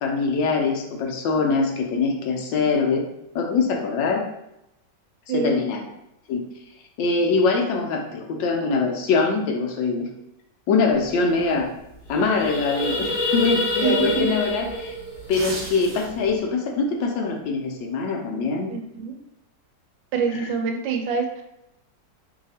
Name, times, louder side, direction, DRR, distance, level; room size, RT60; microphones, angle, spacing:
voice 1, 0.0-3.0 3.3-4.2 5.3-5.8 6.3-6.4 7.0-10.1 10.7-11.7 12.1-15.0 15.3-18.7 20.3-20.5, left 4 dB, 85° left, 2 dB, 1.4 m, -23 dB
voice 2, 5.3-5.6 13.8-14.4 18.7-19.2 20.1-21.4, right 6 dB, 85° right, 3 dB, 1.4 m, -26 dB
sound 1, 11.1-11.2 11.4-11.6 12.0-16.3, left 1 dB, 40° left, 1.1 m, -27 dB
sound 2, 15.2-16.3 16.7-16.9, right 2 dB, 45° right, 0.8 m, -35 dB
3.3 x 2.8 x 4.1 m, 0.85 s
omnidirectional pair, 1.9 m